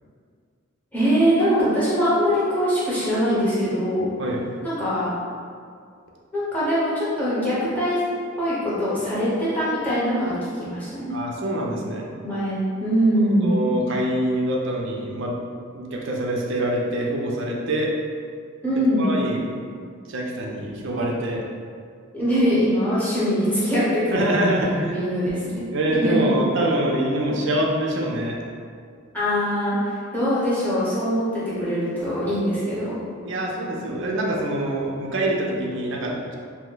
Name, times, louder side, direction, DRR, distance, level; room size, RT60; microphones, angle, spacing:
voice 1, 0.9-4.1 4.6-5.1 6.3-8.0 8.4-11.1 12.2-13.6 18.6-19.1 22.1-25.6 25.9-26.4 29.1-32.9, equal, 10° left, -11 dB, 0.9 m, -22 dB
voice 2, 11.1-12.1 13.4-15.4 15.7-17.9 19.0-19.4 20.1-21.4 24.1-25.0 25.7-28.4 33.2-36.3, right 1 dB, 60° right, -1 dB, 0.5 m, -25 dB
2.7 x 2.1 x 3.8 m, 2.2 s
head